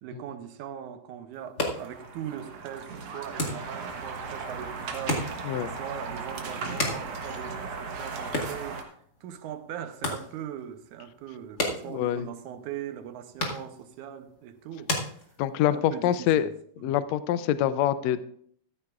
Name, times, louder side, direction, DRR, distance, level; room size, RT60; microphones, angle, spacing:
voice 1, 0.0-5.5 5.8-8.9 9.2-14.9 15.7-17.0, right 9 dB, 75° right, 2.1 m, -40 dB
sound 1, 1.3-15.8, left 1 dB, 35° left, 1.9 m, -37 dB
sound 2, 1.7-8.8, right 4 dB, 55° right, 2.0 m, -37 dB
voice 2, 11.9-12.2 15.4-16.5 16.8-18.2, left 11 dB, 90° left, 1.5 m, -25 dB
14.5 x 13.5 x 2.5 m
omnidirectional pair, 3.8 m